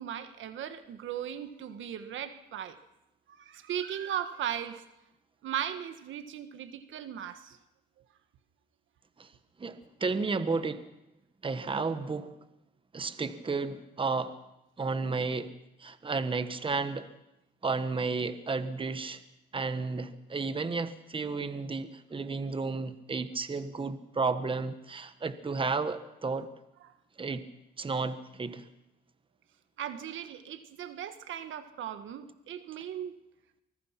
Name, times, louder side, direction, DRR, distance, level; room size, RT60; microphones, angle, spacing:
voice 1, 0.0-2.8 3.3-4.8 5.4-7.6 29.8-33.1, right 9 dB, 75° right, 10 dB, 1.5 m, -37 dB
voice 2, 9.6-10.9 11.4-12.3 12.9-14.4 14.8-15.5 15.8-17.1 17.6-19.2 19.5-26.5 27.2-27.5 27.8-28.6, right 4 dB, 25° right, 11 dB, 1.3 m, -32 dB
24.0 x 21.0 x 5.9 m, 0.88 s
cardioid pair, 90°, 20 cm